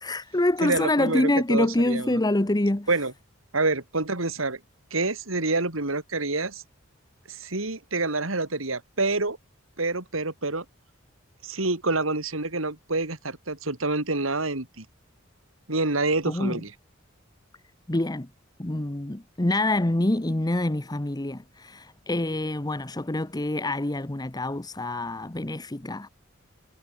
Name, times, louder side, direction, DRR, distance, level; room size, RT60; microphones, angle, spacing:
voice 1, 0.0-2.9 16.3-16.6 17.9-18.3 18.6-26.1, left 1 dB, 20° left, 1.0 m, -26 dB
voice 2, 0.6-2.2 2.9-3.1 3.5-4.6 4.9-6.6 7.3-9.4 9.8-10.6 11.4-14.9 15.7-16.7, right 3 dB, 80° right, 3.7 m, -27 dB
head